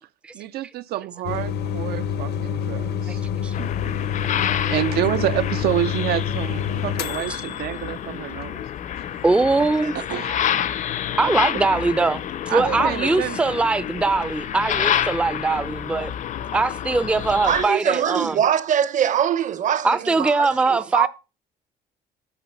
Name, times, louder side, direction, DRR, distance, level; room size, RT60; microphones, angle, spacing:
voice 1, 0.3-3.2 3.6-3.7 4.7-8.6 9.9-10.6 11.2-11.3 12.5-13.6, right 13 dB, 70° right, 0.4 m, -28 dB
sound 1, 1.2-7.8, left 8 dB, 75° left, 0.8 m, -27 dB
sound 2, 3.5-17.7, left 10 dB, 50° left, 0.6 m, -28 dB
voice 2, 9.2-9.9 11.2-12.2 12.5-16.1 16.5-18.4 19.8-21.1, right 3 dB, 5° right, 0.4 m, -21 dB
voice 3, 17.4-21.1, right 9 dB, 50° right, 0.8 m, -23 dB
9.0 x 3.8 x 7.0 m
cardioid pair, 110°, 17 cm